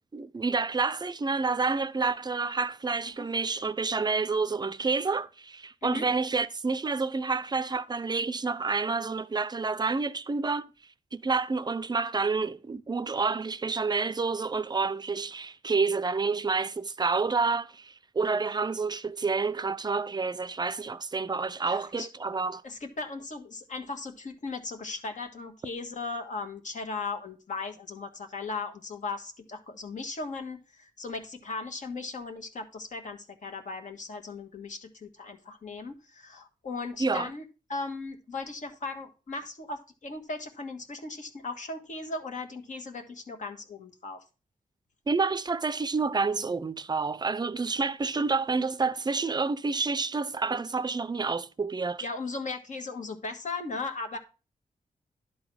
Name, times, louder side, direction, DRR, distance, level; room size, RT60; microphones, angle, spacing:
voice 1, 0.1-10.7 11.1-22.6 37.0-37.3 45.1-52.0, right 4 dB, 30° right, 0.5 m, -29 dB
voice 2, 21.7-22.1 22.6-37.4 37.7-44.2 52.0-54.2, left 3 dB, 55° left, 1.6 m, -37 dB
11.5 x 4.0 x 6.2 m
wide cardioid pair, 125°, 15 cm